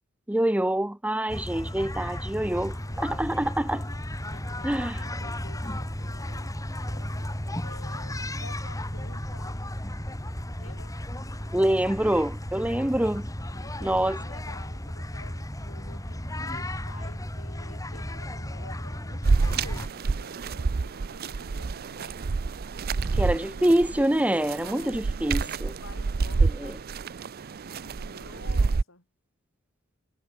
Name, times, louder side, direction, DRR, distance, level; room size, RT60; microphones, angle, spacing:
voice 1, 0.3-3.9 4.6-5.0 11.5-13.3 13.8-14.2 23.2-25.7 26.6-26.7, right 1 dB, 5° right, 0.7 m, -26 dB
sound 1, 1.3-19.9, left 1 dB, 15° left, 3.2 m, -34 dB
voice 2, 2.5-3.3 3.6-7.3 7.6-9.6 10.6-11.0 13.4-22.3 23.0-23.7 24.5-26.8 27.7-29.1, left 2 dB, 70° left, 7.7 m, -50 dB
sound 2, 19.2-28.8, right 4 dB, 45° right, 0.5 m, -28 dB
head